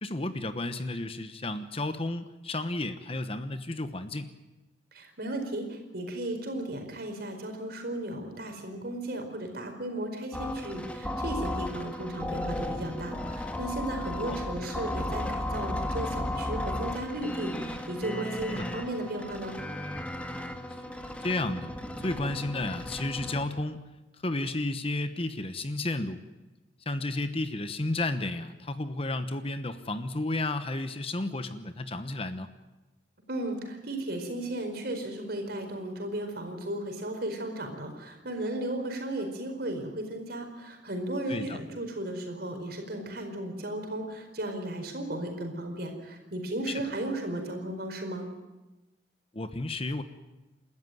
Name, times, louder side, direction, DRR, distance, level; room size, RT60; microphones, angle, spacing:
voice 1, 0.0-4.3 14.3-14.4 18.5-18.7 20.9-23.8 24.2-26.2 26.9-32.5 41.3-41.6 46.7-46.8 49.3-50.0, left 2 dB, 30° left, 10 dB, 1.1 m, -32 dB
voice 2, 4.9-19.6 33.3-48.3, right 1 dB, 55° right, 4 dB, 4.7 m, -35 dB
sound 1, 10.3-23.4, left 1 dB, 5° left, 1.8 m, -35 dB
29.0 x 13.5 x 9.3 m, 1.1 s
head